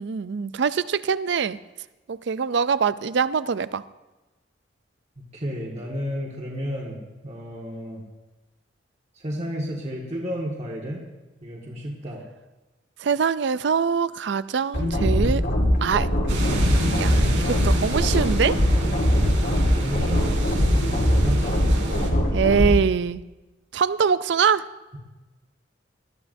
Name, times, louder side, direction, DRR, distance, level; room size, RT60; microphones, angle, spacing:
voice 1, 0.0-1.6 2.1-3.8 13.0-15.5 15.8-16.1 17.0-18.6 22.3-23.2 23.7-24.7, right 6 dB, 65° right, 16 dB, 0.4 m, -23 dB
voice 2, 5.3-7.0 7.2-8.0 9.1-11.0 11.4-12.2 19.7-21.9, equal, 35° right, -3 dB, 1.7 m, -32 dB
sound 1, 14.7-22.7, equal, 70° left, 3.6 m, -21 dB
sound 2, 16.3-22.1, right 1 dB, 90° right, 3.5 m, -29 dB
19.5 x 13.0 x 2.7 m, 1.1 s
head